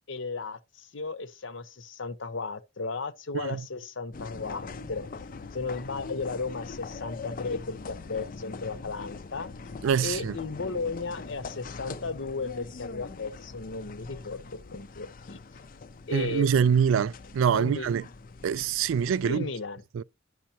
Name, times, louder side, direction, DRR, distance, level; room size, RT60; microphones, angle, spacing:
voice 1, 0.0-5.0 5.5-9.5 10.0-15.4 16.1-16.8 17.5-17.9 19.2-19.8, left 4 dB, 65° left, 0.8 m, -35 dB
sound 1, 4.1-19.4, left 4 dB, 45° left, 0.5 m, -42 dB
voice 2, 9.8-10.3 16.1-18.0 18.4-19.5 19.9-20.0, right 7 dB, 70° right, 0.3 m, -24 dB
10.0 x 6.3 x 2.8 m
head